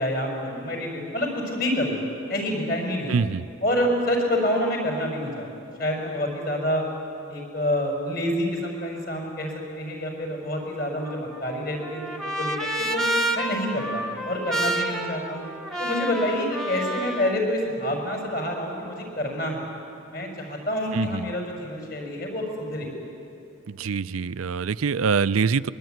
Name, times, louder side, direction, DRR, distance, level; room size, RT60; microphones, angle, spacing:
voice 1, 0.0-2.0 2.3-3.2 3.6-6.8 7.3-13.0 13.3-15.5 15.8-19.7 20.1-22.9, left 1 dB, 45° left, 1 dB, 5.8 m, -27 dB
voice 2, 3.1-3.4 20.9-21.2 23.7-25.7, right 5 dB, 85° right, 14 dB, 0.5 m, -24 dB
Trumpet, 11.0-17.4, right 1 dB, ahead, 1.3 m, -29 dB
23.0 x 22.5 x 9.4 m, 2.7 s
head